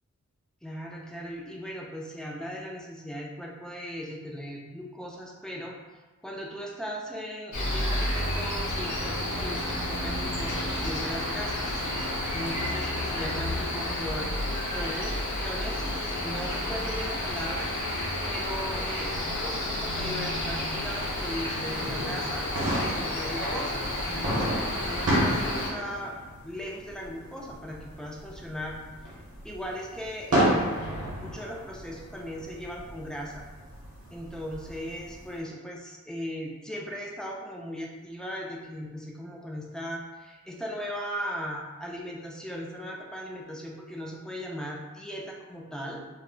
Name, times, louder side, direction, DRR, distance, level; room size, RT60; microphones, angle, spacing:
voice 1, 0.6-5.8 6.2-11.8 12.3-17.7 18.3-22.5 22.7-26.2 26.4-28.8 29.1-29.2 29.4-33.4 34.1-46.0, equal, ahead, -2 dB, 0.4 m, -38 dB
Cricket, 7.5-25.7, left 1 dB, 70° left, 0.6 m, -31 dB
sound 1, 18.8-35.4, right 1 dB, 55° right, 0.8 m, -33 dB
2.1 x 2.0 x 3.6 m, 1.2 s
wide cardioid pair, 60°, 30 cm